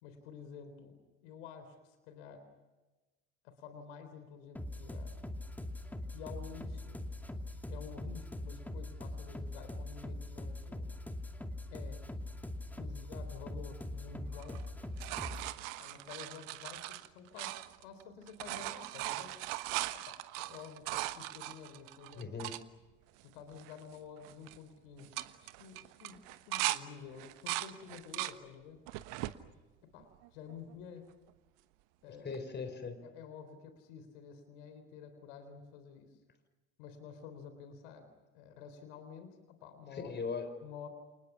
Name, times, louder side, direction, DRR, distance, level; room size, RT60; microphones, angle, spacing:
voice 1, 0.0-2.5 3.4-5.2 6.1-7.0 7.7-10.9 11.7-12.1 12.8-14.6 15.8-19.4 19.9-22.3 23.2-28.8 29.8-31.1 32.0-32.4 33.0-36.2 36.8-38.1 38.3-40.1 40.6-40.9, left 6 dB, 60° left, 9 dB, 3.9 m, -50 dB
sound 1, 4.6-15.5, left 1 dB, 5° left, 2.5 m, -42 dB
sound 2, 14.3-18.0 18.3-22.6 23.2-23.3 23.5-24.0 24.2-24.6 25.0-26.8 27.2-28.4 28.9-29.4 30.0-30.7 32.3-32.4, right 18 dB, 55° right, 1.3 m, -39 dB
voice 2, 22.1-22.6 32.0-33.0 39.9-40.6, left 4 dB, 25° left, 9 dB, 4.3 m, -40 dB
29.5 x 29.5 x 6.0 m, 1.1 s
figure-of-eight pair, 65°, 39 cm